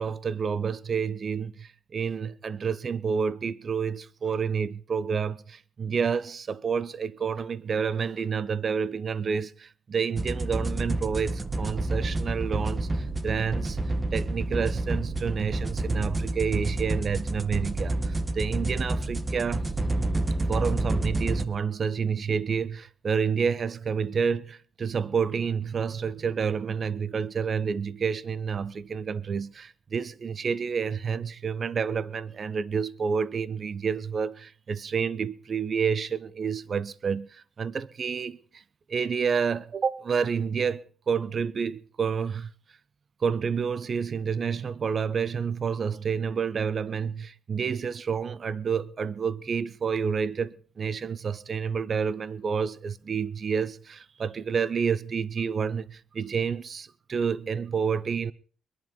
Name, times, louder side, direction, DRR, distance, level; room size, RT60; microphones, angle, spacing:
voice 1, 0.0-13.8 14.1-19.6 20.5-38.6 38.9-42.5 43.2-58.3, right 6 dB, 45° right, 0.8 m, -29 dB
sound 1, 10.2-21.4, right 2 dB, 20° right, 1.3 m, -29 dB
22.0 x 11.0 x 5.4 m
cardioid pair, 90°, 0 cm